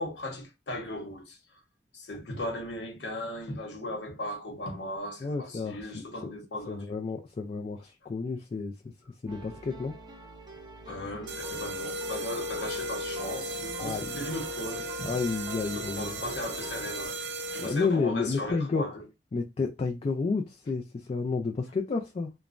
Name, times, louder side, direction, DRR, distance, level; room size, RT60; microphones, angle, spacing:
voice 1, 0.0-1.6 1.9-6.8 10.9-15.1 15.6-19.0, left 1 dB, 80° left, 0.9 m, -37 dB
voice 2, 5.2-6.3 6.7-8.7 9.2-10.0 13.8-14.3 15.0-16.2 17.6-18.8 19.3-22.3, left 4 dB, 35° left, 0.3 m, -31 dB
sound 1, 9.3-17.1, right 1 dB, 25° right, 0.6 m, -45 dB
sound 2, 11.3-18.0, right 1 dB, 75° right, 0.5 m, -36 dB
3.0 x 2.1 x 2.4 m
head